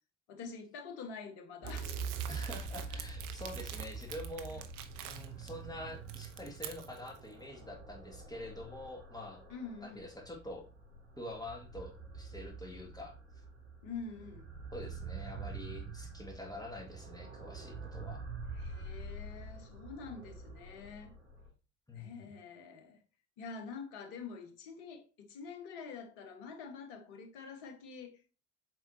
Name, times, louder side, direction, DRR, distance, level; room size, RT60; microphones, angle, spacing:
voice 1, 0.3-1.9 9.5-10.1 13.8-14.5 18.5-21.1 21.9-23.0 23.4-28.2, left 5 dB, 65° left, 1.7 m, -46 dB
sound 1, 1.6-21.5, right 4 dB, 75° right, 2.7 m, -45 dB
Crumpling crinkling, 1.7-5.5 5.9-7.2, right 10 dB, 60° right, 0.9 m, -47 dB
voice 2, 2.3-4.7 5.0-9.4 9.8-10.7 11.2-13.1 14.7-18.2 21.9-22.3, left 1 dB, 10° left, 1.8 m, -46 dB
7.5 x 4.8 x 2.8 m
figure-of-eight pair, 60°, 36 cm